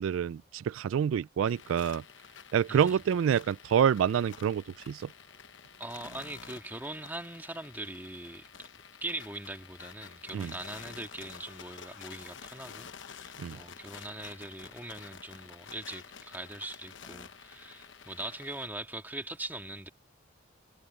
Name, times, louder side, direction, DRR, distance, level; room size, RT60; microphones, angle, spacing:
voice 1, 0.0-2.0 2.5-5.1 10.3-10.5 13.4-13.6, right 8 dB, 85° right, 0.3 m, -27 dB
sound 1, 1.5-18.7, left 7 dB, 70° left, 1.0 m, -50 dB
voice 2, 2.7-3.0 5.8-8.7 9.0-19.9, right 2 dB, 10° right, 2.0 m, -41 dB
head